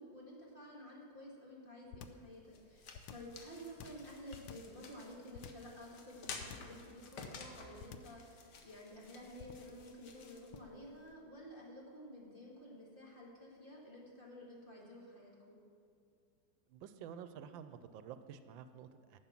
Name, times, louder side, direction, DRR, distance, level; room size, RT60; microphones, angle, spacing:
voice 1, 0.0-15.6, equal, 30° left, -3 dB, 1.8 m, -52 dB
sound 1, 1.9-2.3 2.9-3.4 3.8-4.8 5.3-5.7 6.4-6.8 7.2-7.5 7.8-8.2 9.4-9.8 10.5-10.8, left 8 dB, 80° left, 1.3 m, -51 dB
sound 2, 2.1-11.1, left 4 dB, 65° left, 1.6 m, -53 dB
voice 2, 16.7-19.2, right 8 dB, 85° right, 11 dB, 1.3 m, -50 dB
10.5 x 7.5 x 5.9 m, 2.4 s
omnidirectional pair, 2.1 m